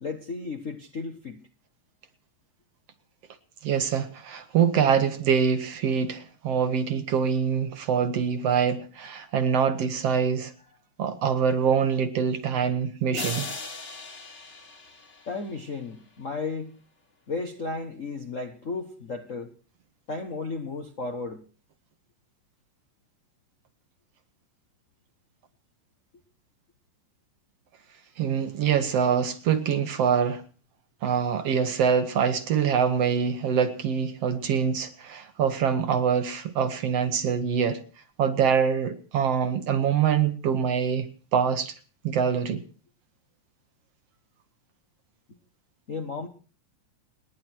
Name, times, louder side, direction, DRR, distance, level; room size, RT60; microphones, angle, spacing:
voice 1, 0.0-1.4 15.3-16.7 17.3-19.5 20.1-21.4 45.9-46.3, left 3 dB, 75° left, 0.7 m, -34 dB
voice 2, 3.6-10.5 11.0-13.5 28.2-30.4 31.0-37.8 38.2-41.7 42.0-42.6, right 7 dB, 60° right, 2.0 m, -24 dB
sound 1, 13.1-15.8, left 3 dB, 25° left, 1.7 m, -38 dB
30.0 x 10.5 x 4.6 m
omnidirectional pair, 3.7 m